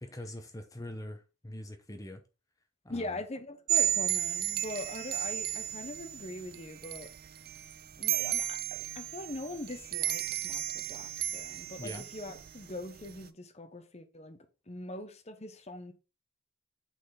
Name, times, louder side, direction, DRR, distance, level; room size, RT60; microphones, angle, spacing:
voice 1, 0.0-2.2 2.8-3.2 11.8-12.0, left 1 dB, 15° left, 0.8 m, -43 dB
voice 2, 2.9-7.1 8.0-14.4 14.7-15.9, left 2 dB, 35° left, 1.0 m, -42 dB
sound 1, 3.7-13.3, right 12 dB, 50° right, 0.5 m, -34 dB
8.2 x 4.3 x 4.3 m
head